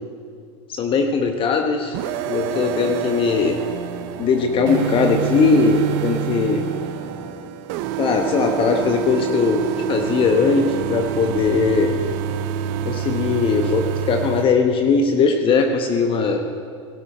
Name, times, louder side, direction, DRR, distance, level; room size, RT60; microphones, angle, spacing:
voice 1, 0.7-2.0 2.3-3.6 4.2-6.7 8.0-11.9 12.8-16.4, left 4 dB, 35° left, 4 dB, 1.1 m, -19 dB
sound 1, 1.9-14.4, right 10 dB, 55° right, 0.7 m, -27 dB
sound 2, 2.3-7.3, right 3 dB, 75° right, 2.7 m, -37 dB
18.0 x 11.5 x 4.3 m, 2.2 s
hypercardioid pair, 95°, 16 cm